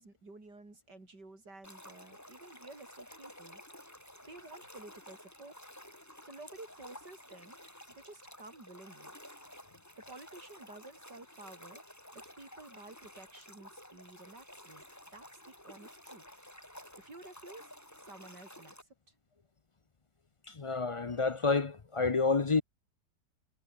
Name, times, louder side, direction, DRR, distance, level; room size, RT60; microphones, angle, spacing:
voice 1, 0.0-3.6 4.2-5.6 6.2-7.6 7.9-9.1 10.0-11.8 12.1-14.8 15.1-16.2 16.9-17.7 18.0-18.7, right 2 dB, 75° right, 6.7 m, -52 dB
sound 1, 1.6-18.8, left 1 dB, 10° left, 4.2 m, -53 dB
voice 2, 20.5-22.6, left 4 dB, 55° left, 0.3 m, -29 dB
omnidirectional pair, 1.8 m